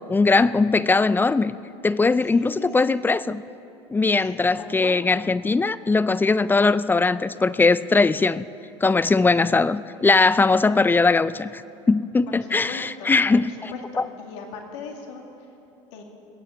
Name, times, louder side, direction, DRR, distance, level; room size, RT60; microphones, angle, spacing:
voice 1, 0.1-1.6 1.8-3.4 3.9-8.5 8.8-11.6 11.9-13.7, left 3 dB, 15° left, 17 dB, 0.4 m, -20 dB
voice 2, 2.3-3.0 4.2-5.0 12.3-15.5 15.9-16.0, left 5 dB, 70° left, 2 dB, 2.3 m, -40 dB
21.5 x 8.4 x 7.1 m, 2.8 s
hypercardioid pair, 80°, 15 cm